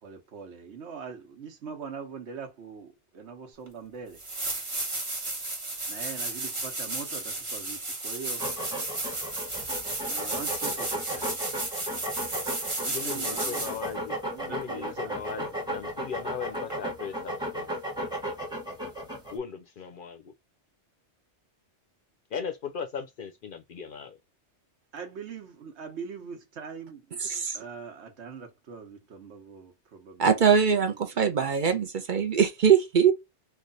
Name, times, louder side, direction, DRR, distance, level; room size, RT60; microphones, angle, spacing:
voice 1, 0.0-4.2 5.9-8.5 10.1-11.3 12.8-13.8 14.2-15.5 24.9-27.2 27.5-30.4, right 6 dB, 75° right, 1.2 m, -42 dB
sound 1, 3.7-3.8 4.1-13.9 16.7-16.8, right 2 dB, 30° right, 1.0 m, -33 dB
sound 2, 8.4-19.4, equal, 5° right, 0.9 m, -35 dB
voice 2, 12.9-14.2 14.5-17.7 19.3-20.3 22.3-24.2, left 6 dB, 60° left, 0.6 m, -38 dB
voice 3, 27.2-27.6 30.2-33.1, right 7 dB, 55° right, 0.7 m, -22 dB
3.2 x 2.4 x 3.8 m
omnidirectional pair, 1.2 m